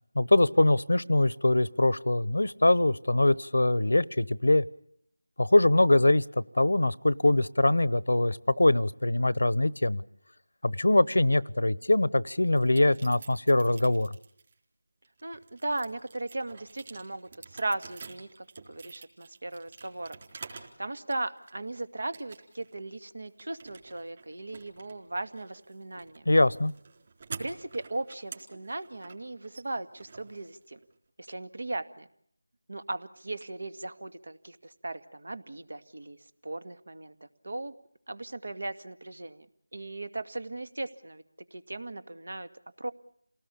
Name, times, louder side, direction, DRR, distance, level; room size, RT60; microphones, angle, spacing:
voice 1, 0.1-4.6 5.4-10.0 10.6-14.1 26.3-26.7, left 1 dB, 80° left, 20 dB, 1.0 m, -23 dB
sound 1, 12.5-14.5 15.0-20.8 21.1-21.7 22.1-22.7 23.0-30.9, right 4 dB, 30° right, 4.0 m, -48 dB
voice 2, 15.2-20.2 20.8-26.3 27.4-30.8 31.2-32.1 32.7-36.2 36.4-37.1 37.4-37.7 38.1-39.5 39.7-41.2 41.5-42.5 42.8-42.9, right 2 dB, 65° right, 11 dB, 2.0 m, -37 dB
29.0 x 18.5 x 8.5 m, 0.70 s
figure-of-eight pair, 170°, 0 cm